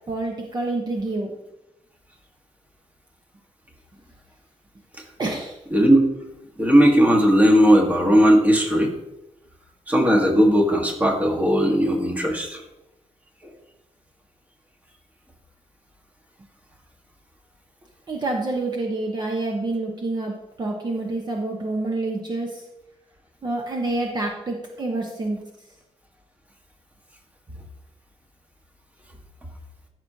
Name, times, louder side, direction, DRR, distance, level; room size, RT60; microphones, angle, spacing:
voice 1, 0.1-1.3 5.2-5.6 18.1-22.7 23.4-25.4, right 2 dB, 35° right, 0 dB, 1.0 m, -27 dB
voice 2, 5.7-6.1 6.6-8.9 9.9-12.6, equal, 10° right, 1 dB, 1.5 m, -17 dB
13.5 x 6.1 x 2.8 m, 0.93 s
wide cardioid pair, 150°, 12 cm